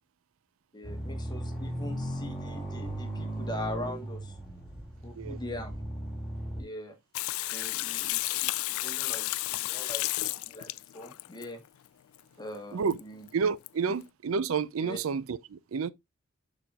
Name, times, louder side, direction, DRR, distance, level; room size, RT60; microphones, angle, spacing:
voice 1, 0.7-4.4 5.0-5.8 6.6-7.0 7.4-11.6 12.4-13.3 14.8-15.0, left 1 dB, 20° left, 1.2 m, -42 dB
sound 1, 0.8-6.6, right 1 dB, ahead, 2.9 m, -36 dB
Water tap faucet / Sink (filling or washing), 7.1-11.4 12.9-13.0 13.3-13.4 13.7-13.8, left 19 dB, 90° left, 0.3 m, -32 dB
voice 2, 13.3-15.9, right 5 dB, 80° right, 0.5 m, -30 dB
12.5 x 4.2 x 2.4 m
head